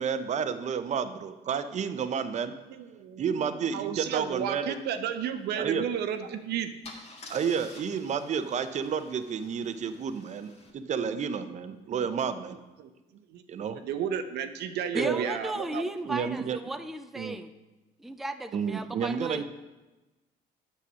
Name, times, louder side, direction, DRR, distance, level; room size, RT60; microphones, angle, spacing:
voice 1, 0.0-2.6 3.2-4.8 5.6-5.9 7.3-12.6 13.5-13.8 14.9-15.3 16.0-16.6 17.2-17.4 18.5-19.4, right 7 dB, 45° right, 11 dB, 0.7 m, -31 dB
voice 2, 2.7-6.7 11.1-11.2 11.9-12.2 12.8-12.9 13.3-15.8, right 8 dB, 80° right, 8 dB, 0.8 m, -33 dB
Car / Engine starting / Idling, 6.1-6.3 6.8-10.7, left 2 dB, 40° left, 1.8 m, -50 dB
voice 3, 14.9-17.5 18.0-19.4, right 1 dB, ahead, 8 dB, 0.4 m, -35 dB
8.5 x 6.8 x 6.2 m, 1.1 s
cardioid pair, 110°, 17 cm